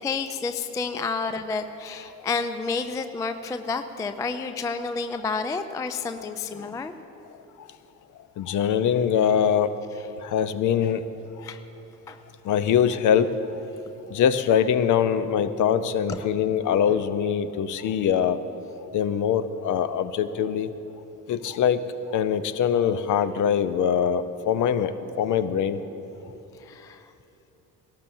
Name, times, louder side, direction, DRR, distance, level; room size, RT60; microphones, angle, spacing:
voice 1, 0.0-6.9 11.4-11.6 12.1-12.2 16.1-16.2 26.6-27.1, left 4 dB, 10° left, 10 dB, 0.3 m, -30 dB
voice 2, 8.4-9.7 10.2-11.1 12.4-13.4 14.1-18.4 18.9-20.7 21.3-21.8 22.1-25.8, left 8 dB, 40° left, 13 dB, 0.7 m, -23 dB
20.5 x 18.0 x 2.7 m, 2.9 s
figure-of-eight pair, 50°, 49 cm